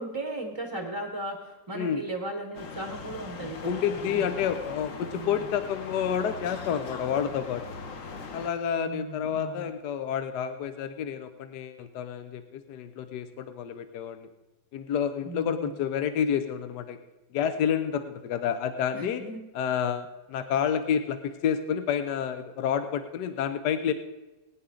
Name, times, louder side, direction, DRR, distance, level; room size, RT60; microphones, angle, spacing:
voice 1, 0.0-3.7 4.0-4.3 5.1-5.5 8.8-9.7 15.2-15.8 18.9-19.4, right 2 dB, 20° right, 2 dB, 0.9 m, -37 dB
sound 1, 2.5-8.5, left 4 dB, 50° left, 1.2 m, -40 dB
voice 2, 3.6-7.6 8.3-14.3 14.7-17.0 17.3-19.2 19.5-23.9, left 8 dB, 70° left, 9 dB, 1.2 m, -29 dB
19.5 x 9.9 x 3.8 m, 1.1 s
omnidirectional pair, 2.0 m